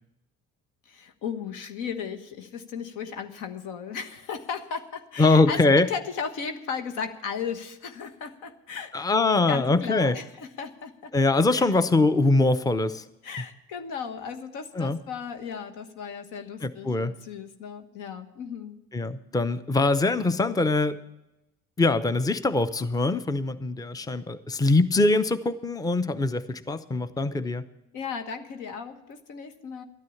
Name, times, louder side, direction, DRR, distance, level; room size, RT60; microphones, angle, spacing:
voice 1, 0.8-9.1 9.5-11.1 11.5-11.7 13.2-18.8 27.9-29.8, left 6 dB, 80° left, 7 dB, 1.3 m, -36 dB
voice 2, 5.2-5.9 8.9-10.2 11.1-13.0 14.7-15.0 16.6-17.1 18.9-21.0 21.8-27.6, left 2 dB, 10° left, 13 dB, 0.7 m, -23 dB
12.5 x 9.4 x 7.1 m, 0.91 s
supercardioid pair, 80°, 30 cm